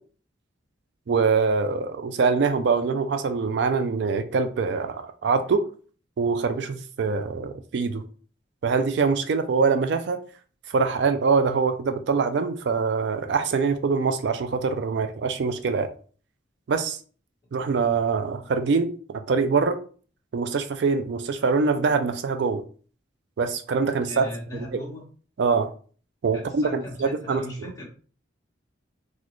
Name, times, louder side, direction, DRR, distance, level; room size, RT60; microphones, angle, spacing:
voice 1, 1.1-5.6 6.2-8.0 8.6-10.2 10.7-15.9 16.7-17.0 17.5-19.8 20.3-22.6 23.4-24.2 24.7-24.8 25.4-25.7 26.2-27.4, right 5 dB, 65° right, 8 dB, 0.3 m, -24 dB
voice 2, 24.0-25.1 26.3-27.9, equal, 15° left, -5 dB, 1.3 m, -37 dB
4.0 x 2.4 x 3.0 m, 0.41 s
head